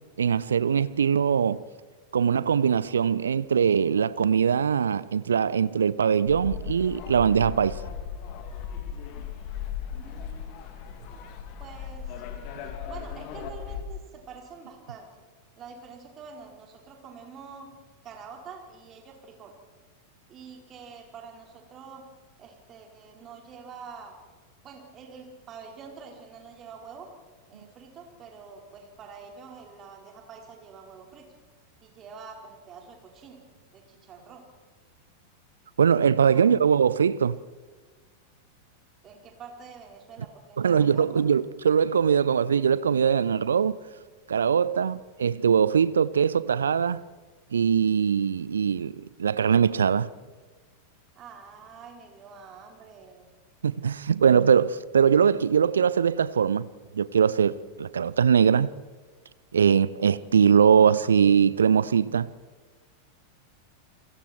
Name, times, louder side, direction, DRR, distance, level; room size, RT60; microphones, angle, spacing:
voice 1, 0.2-1.6 2.1-7.8 35.8-37.4 40.6-43.8 44.3-47.0 47.5-50.1 53.6-56.7 56.9-58.7 59.5-62.3, right 7 dB, 70° right, 0.6 m, -22 dB
sound 1, 6.3-13.8, left 7 dB, 40° left, 2.8 m, -37 dB
voice 2, 9.9-10.7 11.1-11.2 11.6-12.2 12.6-15.1 15.6-17.7 18.0-19.5 20.3-22.0 22.4-24.1 24.6-27.1 27.5-31.2 31.8-33.4 33.7-34.4 36.3-36.4 39.0-41.3 51.1-53.3, right 5 dB, 30° right, 4.8 m, -46 dB
29.5 x 23.0 x 4.6 m
figure-of-eight pair, 90°, 0 cm